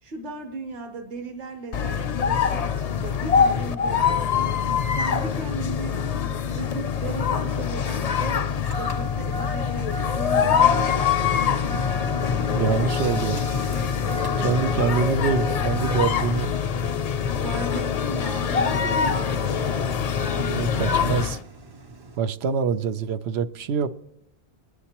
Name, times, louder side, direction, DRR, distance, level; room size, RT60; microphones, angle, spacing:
voice 1, 0.0-4.7 4.9-6.0 6.5-11.8 14.3-15.0 17.2-21.2, right 3 dB, 55° right, 1.1 m, -37 dB
sound 1, 1.7-21.4, left 7 dB, 50° left, 0.5 m, -24 dB
Engine starting, 7.1-22.2, right 1 dB, 35° right, 0.4 m, -38 dB
voice 2, 12.5-13.4 14.4-16.5 20.4-21.4 22.2-23.9, right 6 dB, 90° right, 0.9 m, -25 dB
23.5 x 9.7 x 2.9 m
omnidirectional pair, 1.0 m